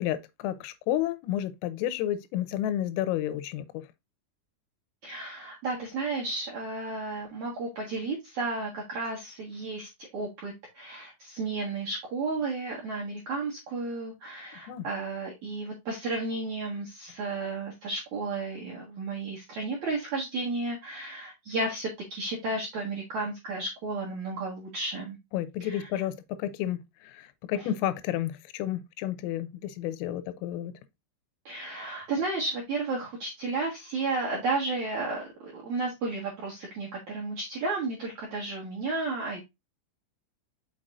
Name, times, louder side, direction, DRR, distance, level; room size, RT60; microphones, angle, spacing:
voice 1, 0.0-3.9 14.7-14.8 25.3-30.7, left 12 dB, 85° left, 3.3 m, -31 dB
voice 2, 5.0-25.2 25.6-26.0 27.5-27.7 31.5-39.4, right 3 dB, 70° right, 1.8 m, -33 dB
6.5 x 5.9 x 2.5 m
omnidirectional pair, 5.9 m